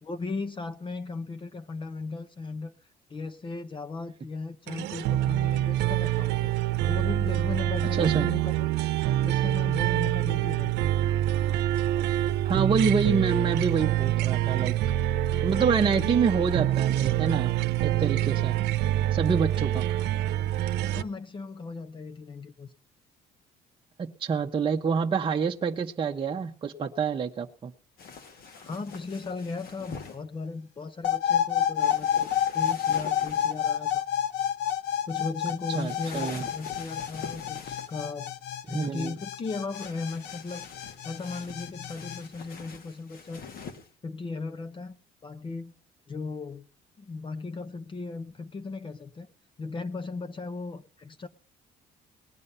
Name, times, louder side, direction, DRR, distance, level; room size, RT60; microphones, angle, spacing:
voice 1, 0.0-2.8 3.1-6.5 6.8-8.7 9.2-10.9 20.9-22.7 28.6-34.0 35.1-38.3 38.7-40.6 41.0-43.4 44.0-44.9 45.2-45.7 46.1-46.7 47.0-49.3 49.6-51.3, left 3 dB, 30° left, 10 dB, 0.9 m, -37 dB
sound 1, 4.7-21.0, right 14 dB, 85° right, 0.8 m, -26 dB
voice 2, 7.9-8.3 12.4-14.8 15.4-17.5 17.8-18.5 19.1-19.9 24.0-27.7 35.7-36.5 38.7-39.1, right 5 dB, 30° right, 1 dB, 0.9 m, -27 dB
sound 2, 28.0-30.2 31.8-33.6 35.7-38.0 39.7-43.9, left 5 dB, 60° left, 2.0 m, -45 dB
sound 3, 31.0-42.2, left 9 dB, 85° left, 0.9 m, -29 dB
19.0 x 9.5 x 5.6 m, 0.40 s
cardioid pair, 110°, 17 cm